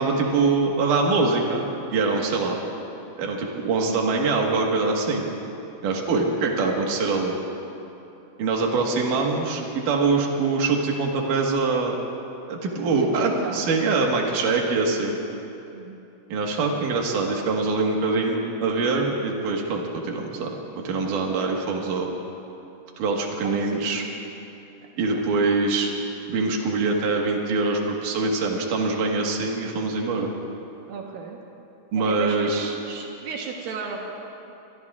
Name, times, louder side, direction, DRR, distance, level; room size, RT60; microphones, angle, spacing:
voice 1, 0.0-2.6 3.2-5.3 5.8-7.4 8.4-12.0 12.5-15.2 16.3-22.1 23.0-24.0 25.0-25.9 26.3-30.3 31.9-32.8, right 3 dB, 65° right, 0 dB, 2.1 m, -24 dB
voice 2, 12.9-13.6 15.7-16.0 23.4-23.9 30.9-31.4 31.9-34.0, right 5 dB, 85° right, -1 dB, 2.0 m, -35 dB
26.5 x 22.5 x 2.4 m, 2.8 s
omnidirectional pair, 5.9 m